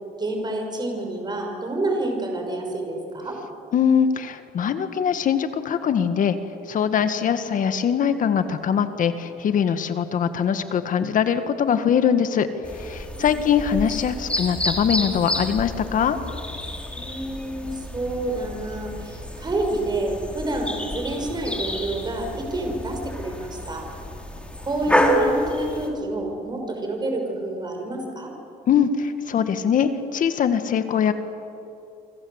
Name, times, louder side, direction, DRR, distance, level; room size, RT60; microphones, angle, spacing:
voice 1, 0.2-3.4 13.1-13.4 16.9-23.9 24.6-28.3, right 2 dB, 25° right, 2 dB, 6.2 m, -28 dB
voice 2, 3.7-6.4 6.7-16.2 28.7-31.1, left 7 dB, 50° left, 9 dB, 1.8 m, -22 dB
sound 1, 12.6-25.9, left 1 dB, 5° left, 4.2 m, -29 dB
28.5 x 24.5 x 8.1 m, 2.7 s
cardioid pair, 110°, 17 cm